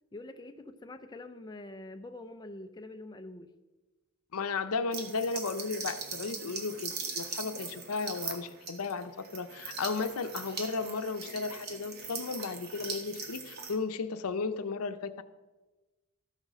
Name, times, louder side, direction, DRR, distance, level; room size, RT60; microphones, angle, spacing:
voice 1, 0.1-3.5 6.3-6.5, left 2 dB, 20° left, 6 dB, 0.5 m, -45 dB
voice 2, 4.3-15.2, left 4 dB, 85° left, 10 dB, 0.7 m, -34 dB
sound 1, 4.9-13.8, right 5 dB, 45° right, 1.5 m, -40 dB
13.5 x 6.6 x 6.2 m, 1.2 s
head